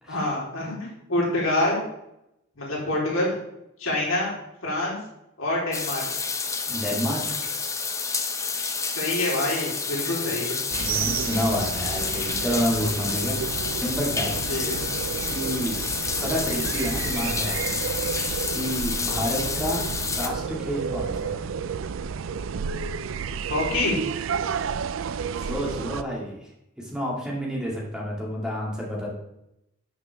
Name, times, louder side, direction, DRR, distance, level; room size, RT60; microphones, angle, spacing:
voice 1, 0.1-1.8 2.5-3.4 3.8-4.3 4.6-5.0 5.4-6.0 8.9-10.6 14.5-14.8 23.5-24.0, left 2 dB, 70° left, -4 dB, 3.4 m, -26 dB
sound 1, 5.7-20.3, left 5 dB, 15° left, 0.5 m, -29 dB
voice 2, 6.7-7.4 10.8-13.4 13.8-14.4 15.3-15.8 16.2-17.8 18.1-19.9 20.1-21.4 25.4-26.5 26.8-29.1, equal, 5° right, -4 dB, 2.0 m, -29 dB
sound 2, 10.7-26.0, right 6 dB, 65° right, 0.4 m, -31 dB
12.0 x 5.9 x 3.4 m, 0.83 s
head